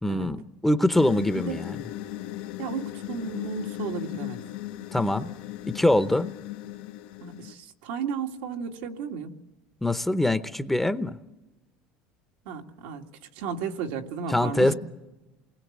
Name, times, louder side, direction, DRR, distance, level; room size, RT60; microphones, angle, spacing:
voice 1, 0.0-1.8 4.9-5.3 5.6-6.3 9.8-11.2 14.3-14.7, left 1 dB, 5° left, 11 dB, 0.8 m, -23 dB
sound 1, 0.9-7.5, left 14 dB, 85° left, 1.0 m, -37 dB
voice 2, 2.6-4.4 7.2-9.3 12.5-13.0 13.3-14.7, right 6 dB, 90° right, 3 dB, 2.2 m, -34 dB
28.0 x 20.5 x 7.4 m, 1.0 s
cardioid pair, 135°, 4 cm